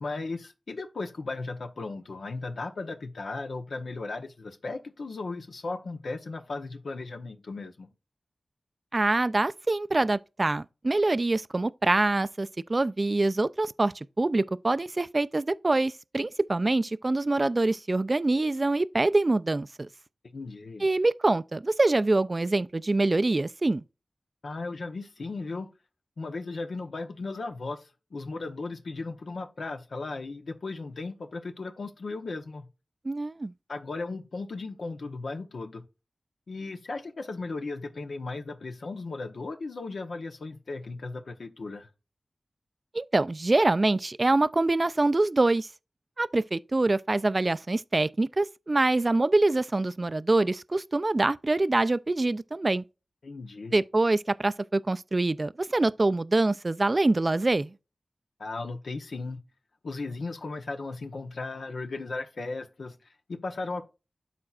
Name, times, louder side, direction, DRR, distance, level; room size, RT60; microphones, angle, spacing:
voice 1, 0.0-7.9 20.3-20.9 24.4-25.7 26.2-32.7 33.7-35.8 36.5-41.9 53.2-53.8 58.4-59.4 59.8-63.9, left 3 dB, 85° left, 0.8 m, -36 dB
voice 2, 8.9-19.9 20.8-23.8 33.0-33.5 42.9-45.7 46.2-52.8 53.7-57.7, right 2 dB, 45° right, 0.3 m, -25 dB
12.5 x 4.3 x 2.4 m
cardioid pair, 45°, 0 cm